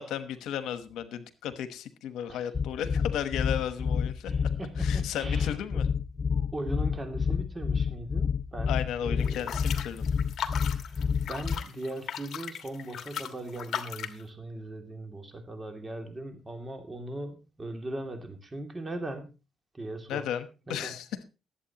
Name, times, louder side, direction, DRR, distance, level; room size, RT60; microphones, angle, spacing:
voice 1, 0.0-4.3 4.8-5.9 8.7-10.0 20.1-21.1, left 9 dB, 85° left, 12 dB, 1.1 m, -34 dB
sound 1, 2.5-11.6, left 6 dB, 35° left, 0.6 m, -28 dB
voice 2, 4.3-5.8 6.3-9.5 10.8-19.3 19.7-20.2 20.7-20.9, right 1 dB, 25° right, 5 dB, 2.6 m, -39 dB
sound 2, 9.2-14.2, left 9 dB, 65° left, 1.3 m, -37 dB
20.0 x 8.3 x 2.9 m, 0.30 s
cardioid pair, 90°, 0 cm